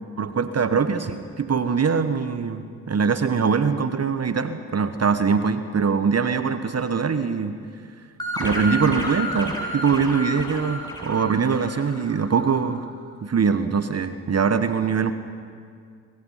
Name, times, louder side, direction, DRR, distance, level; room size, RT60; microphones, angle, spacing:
voice 1, 0.2-7.6 8.4-12.9 13.2-15.1, right 5 dB, 40° right, 10 dB, 1.3 m, -22 dB
sound 1, 8.2-12.5, equal, 10° left, 7.3 m, -31 dB
26.0 x 24.0 x 5.7 m, 2.2 s
hypercardioid pair, 45°, 39 cm